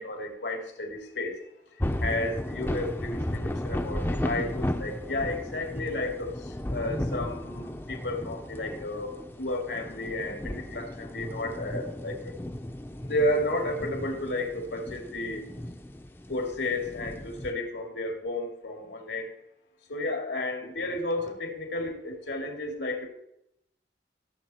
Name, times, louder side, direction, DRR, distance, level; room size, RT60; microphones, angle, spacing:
voice 1, 0.0-1.4 2.0-12.3 13.0-15.5 16.3-19.3 19.9-23.1, left 1 dB, 80° left, 2 dB, 2.6 m, -32 dB
sound 1, 1.8-17.5, left 1 dB, 10° left, 0.5 m, -35 dB
16.0 x 7.2 x 4.4 m, 0.80 s
head